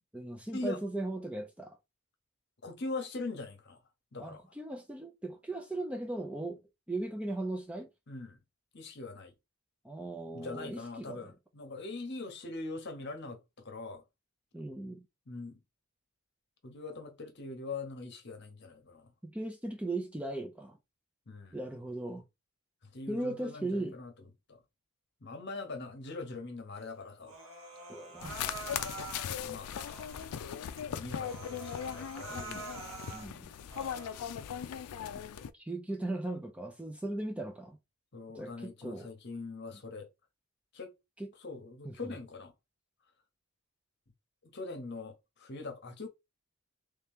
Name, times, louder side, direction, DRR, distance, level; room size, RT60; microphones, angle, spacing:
voice 1, 0.1-1.8 4.2-6.6 6.9-7.9 9.8-11.3 14.5-15.0 19.2-20.8 21.5-22.2 23.1-24.0 27.9-28.3 32.3-32.6 33.1-33.5 35.5-37.8 38.3-39.1 41.2-41.3 41.8-42.1, right 2 dB, 5° right, 0.4 m, -38 dB
voice 2, 2.6-3.8 4.1-4.4 8.1-8.4 8.7-9.3 10.3-14.0 15.3-15.6 16.6-19.1 21.3-21.6 22.9-24.1 24.5-24.6 25.2-27.4 29.3-29.7 30.9-32.8 34.6-34.8 38.1-40.1 40.7-40.9 41.4-42.5 44.4-46.1, left 3 dB, 50° left, 0.9 m, -42 dB
Human voice, 27.2-29.3 29.7-30.3 30.8-30.9 31.2-33.3 33.7-34.3, right 3 dB, 65° right, 1.4 m, -46 dB
sound 1, 28.2-35.5, left 8 dB, 85° left, 0.4 m, -39 dB
3.3 x 2.8 x 3.5 m
head